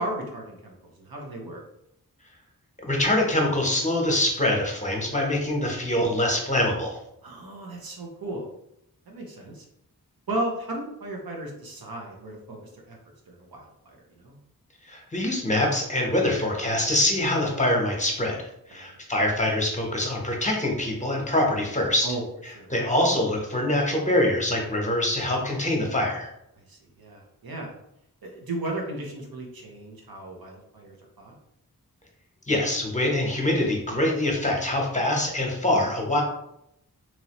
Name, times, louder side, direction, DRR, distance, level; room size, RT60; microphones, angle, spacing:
voice 1, 0.0-1.6 7.2-8.5 9.1-9.6 10.3-12.6 12.9-13.0 13.3-14.4 18.7-18.8 22.0-22.7 26.7-27.7 28.2-31.3, right 1 dB, 85° right, 0 dB, 0.8 m, -35 dB
voice 2, 2.8-7.0 14.9-22.1 22.7-26.3 32.5-36.2, left 1 dB, 20° left, -1 dB, 0.9 m, -24 dB
3.0 x 2.7 x 2.9 m, 0.79 s
wide cardioid pair, 50°, 35 cm